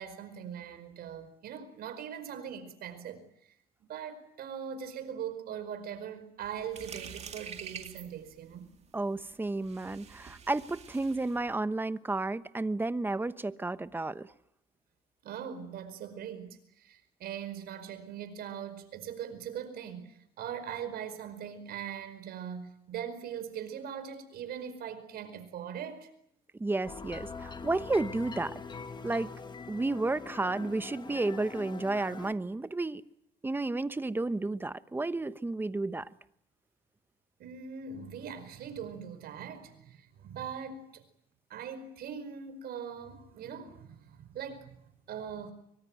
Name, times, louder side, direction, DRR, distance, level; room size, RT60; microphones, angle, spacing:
voice 1, 0.0-3.5 3.8-8.7 15.2-26.1 37.4-41.1 41.5-45.5, right 8 dB, 65° right, 10 dB, 5.0 m, -41 dB
sound 1, 6.4-11.5, right 7 dB, 40° right, 2.4 m, -47 dB
voice 2, 8.9-14.3 26.6-28.5 29.0-29.3 29.7-33.0 33.4-36.1, right 2 dB, 10° right, 13 dB, 1.0 m, -32 dB
sound 2, 26.8-32.3, left 4 dB, 25° left, 1.8 m, -43 dB
24.0 x 24.0 x 9.1 m, 0.77 s
cardioid pair, 110°, 17 cm